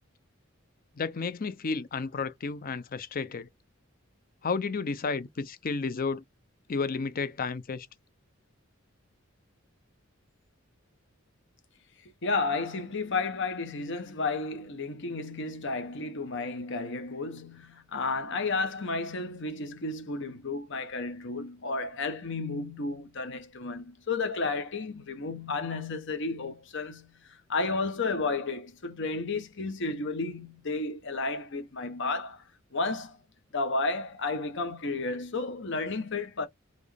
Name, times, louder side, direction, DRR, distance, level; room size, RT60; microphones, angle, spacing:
voice 1, 1.0-3.5 4.4-6.2 6.7-7.9, left 4 dB, 45° left, 0.6 m, -32 dB
voice 2, 12.2-32.4 32.7-33.2 33.5-36.5, left 3 dB, 60° left, 1.0 m, -32 dB
4.2 x 3.1 x 3.4 m
head